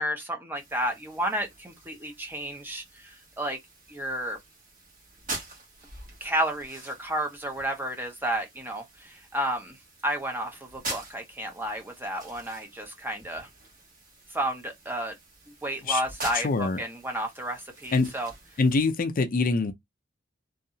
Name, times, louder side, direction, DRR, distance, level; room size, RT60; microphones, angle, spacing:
voice 1, 0.0-3.6 3.9-4.4 6.2-9.8 10.0-13.5 14.3-15.1 15.5-18.3, right 1 dB, 10° right, 0.6 m, -31 dB
sound 1, 0.5-18.9, right 2 dB, 45° right, 1.2 m, -45 dB
voice 2, 16.3-16.8 17.9-18.1 18.6-19.7, left 3 dB, 45° left, 0.5 m, -24 dB
2.6 x 2.4 x 2.7 m
head